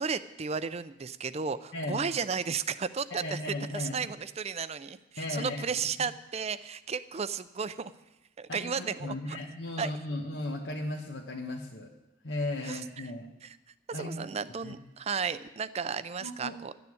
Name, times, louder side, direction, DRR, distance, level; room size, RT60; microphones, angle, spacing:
voice 1, 0.0-3.4 3.7-7.9 8.4-9.4 9.8-9.9 12.6-13.1 13.4-13.6 13.9-16.7, right 6 dB, 35° right, 14 dB, 0.5 m, -34 dB
voice 2, 1.7-2.0 3.1-4.0 5.2-5.6 6.0-6.1 8.5-11.9 12.2-13.3 13.9-14.3 14.6-14.8 16.2-16.6, left 1 dB, 75° left, -1 dB, 1.2 m, -36 dB
12.5 x 6.9 x 9.7 m, 0.94 s
head